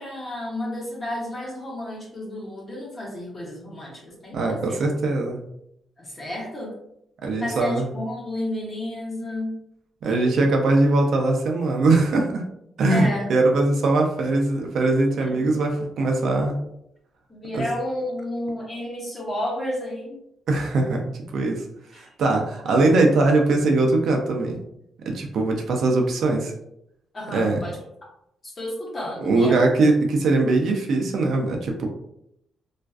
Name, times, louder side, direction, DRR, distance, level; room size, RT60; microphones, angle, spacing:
voice 1, 0.0-4.8 6.0-6.7 7.4-9.6 12.9-13.3 15.2-15.5 17.3-20.2 21.9-22.1 27.1-27.8 28.4-29.7, left 1 dB, 25° left, -3 dB, 0.8 m, -31 dB
voice 2, 4.3-5.4 7.2-7.9 10.0-12.4 12.8-16.6 17.5-17.7 20.5-21.0 21.3-21.6 22.0-24.6 25.1-26.5 27.3-27.6 29.2-31.9, right 2 dB, 60° right, 2 dB, 0.4 m, -21 dB
2.4 x 2.3 x 2.3 m, 0.77 s
cardioid pair, 160°, 0 cm